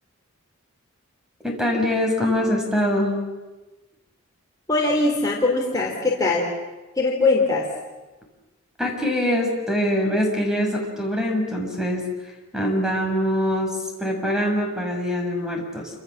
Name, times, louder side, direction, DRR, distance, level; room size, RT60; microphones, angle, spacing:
voice 1, 1.4-3.3 8.8-12.0 12.5-15.9, equal, 5° right, 1 dB, 6.3 m, -23 dB
voice 2, 4.7-6.5 7.0-7.7, left 3 dB, 15° left, -3 dB, 3.7 m, -21 dB
28.0 x 26.5 x 7.5 m, 1.1 s
head